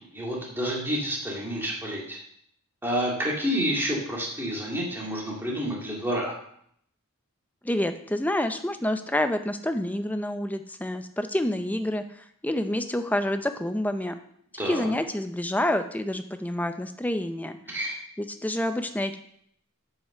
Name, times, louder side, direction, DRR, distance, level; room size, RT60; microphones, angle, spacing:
voice 1, 0.1-2.2 2.8-6.3 14.6-14.9 17.7-17.9, equal, 10° right, -4 dB, 2.2 m, -29 dB
voice 2, 7.6-14.2 14.7-17.6 18.2-19.2, left 1 dB, 5° left, 8 dB, 0.5 m, -28 dB
9.1 x 5.7 x 6.5 m, 0.70 s
head